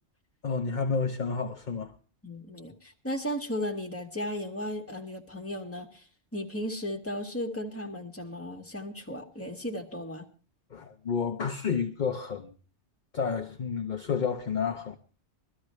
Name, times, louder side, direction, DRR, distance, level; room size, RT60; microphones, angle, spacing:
voice 1, 0.4-1.9 10.7-12.5 13.1-15.0, left 5 dB, 45° left, 0.9 m, -30 dB
voice 2, 2.2-6.0 6.3-10.3, left 1 dB, 10° left, 1.7 m, -35 dB
22.5 x 13.5 x 3.2 m
omnidirectional pair, 1.2 m